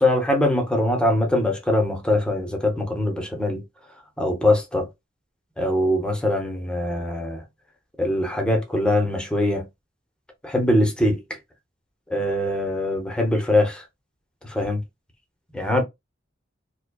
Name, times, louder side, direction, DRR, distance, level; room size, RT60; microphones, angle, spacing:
voice 1, 0.0-3.6 4.2-4.9 5.6-7.4 8.0-9.6 10.4-11.2 12.1-13.8 14.5-14.8 15.5-15.8, left 1 dB, 5° left, 0.8 m, -22 dB
4.8 x 2.2 x 2.3 m
head